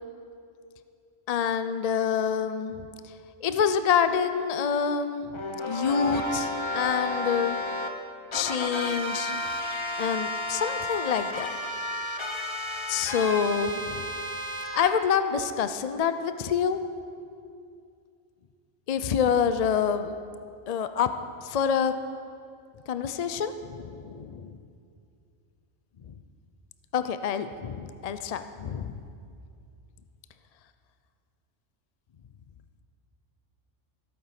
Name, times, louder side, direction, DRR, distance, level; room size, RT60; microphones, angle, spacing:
voice 1, 1.3-2.9 3.4-5.3 5.7-7.6 8.3-9.4 10.0-11.5 12.9-14.1 14.7-16.8 18.9-20.2 20.7-21.1 21.4-21.9 22.9-24.5 26.9-28.9, left 7 dB, 60° left, 10 dB, 0.4 m, -27 dB
sound 1, 5.3-7.9 8.3-14.9, left 1 dB, 25° left, 0.8 m, -32 dB
15.0 x 8.8 x 5.9 m, 2.4 s
omnidirectional pair, 1.3 m